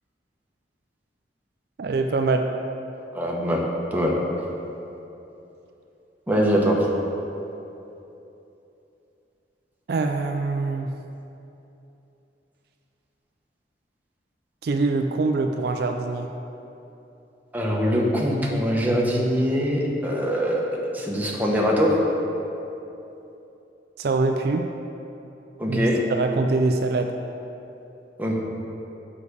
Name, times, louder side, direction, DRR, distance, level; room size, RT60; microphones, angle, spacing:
voice 1, 1.8-2.5 9.9-10.9 14.6-16.3 24.0-24.6 25.7-27.1, right 3 dB, 60° right, 5 dB, 0.4 m, -24 dB
voice 2, 3.1-3.6 3.9-4.1 6.3-6.9 17.5-22.0 25.6-26.0 28.2-28.4, equal, 10° right, -3 dB, 1.0 m, -23 dB
7.0 x 4.9 x 6.7 m, 2.9 s
head